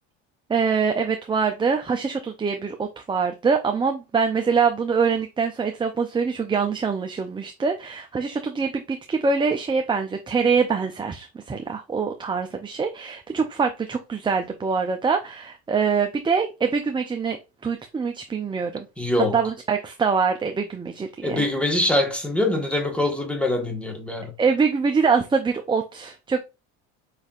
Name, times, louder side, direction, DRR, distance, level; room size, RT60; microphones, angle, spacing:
voice 1, 0.5-17.4 17.6-18.9 19.3-21.5 24.4-26.4, right 5 dB, 15° right, 0.5 m, -24 dB
voice 2, 19.0-19.4 21.2-24.3, left 1 dB, 5° left, 1.4 m, -24 dB
5.3 x 3.2 x 2.4 m
supercardioid pair, 85°, 35 cm